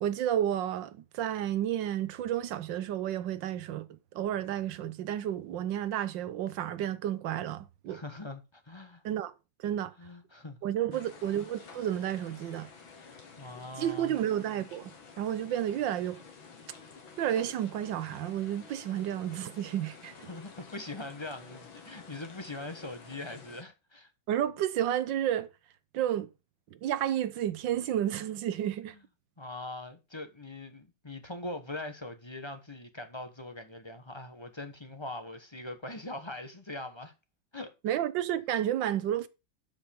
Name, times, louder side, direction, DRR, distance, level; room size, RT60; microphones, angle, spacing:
voice 1, 0.0-3.9 4.1-8.0 9.0-9.3 9.6-9.9 10.6-12.7 13.8-16.2 17.2-20.3 24.3-25.5 25.9-26.3 26.8-28.9 37.8-39.3, right 11 dB, 75° right, 1.5 m, -31 dB
voice 2, 7.9-9.0 10.0-10.6 10.9-11.1 13.0-14.2 20.3-24.1 28.9-29.0 29.4-37.1 37.5-38.0, left 2 dB, 20° left, 1.0 m, -42 dB
sound 1, 10.9-23.6, left 5 dB, 90° left, 2.4 m, -51 dB
12.5 x 5.5 x 5.3 m
omnidirectional pair, 2.1 m